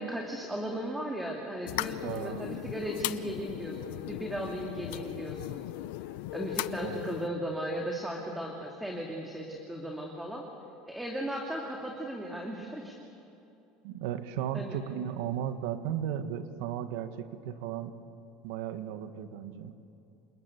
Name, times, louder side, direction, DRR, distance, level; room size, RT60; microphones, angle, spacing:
voice 1, 0.0-5.6 6.3-10.4 10.9-13.0 14.5-14.8, right 1 dB, 5° right, 0 dB, 2.4 m, -36 dB
sound 1, 1.7-7.3, left 17 dB, 80° left, 0.6 m, -37 dB
voice 2, 2.0-2.6 6.8-7.2 13.8-17.9 18.4-19.7, right 10 dB, 80° right, 9 dB, 1.6 m, -35 dB
28.5 x 20.5 x 8.4 m, 2.8 s
supercardioid pair, 135°, 0 cm